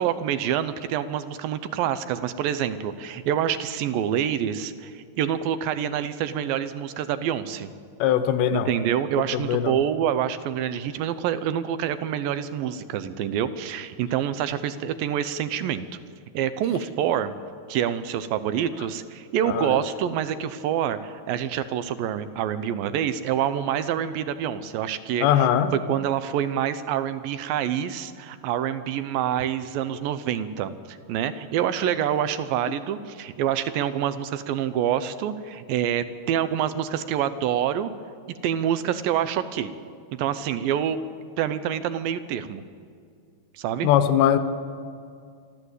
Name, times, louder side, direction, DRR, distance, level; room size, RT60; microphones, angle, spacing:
voice 1, 0.0-7.7 8.5-15.9 16.3-17.3 17.7-25.5 25.9-37.9 38.4-39.7 40.1-41.0 41.4-42.6 43.5-43.9, right 9 dB, 75° right, 12 dB, 2.4 m, -26 dB
voice 2, 8.0-8.7 9.3-9.8 19.5-19.8 25.2-25.7 43.8-44.4, left 10 dB, 85° left, 9 dB, 2.9 m, -21 dB
25.5 x 13.0 x 8.2 m, 2.2 s
omnidirectional pair, 4.4 m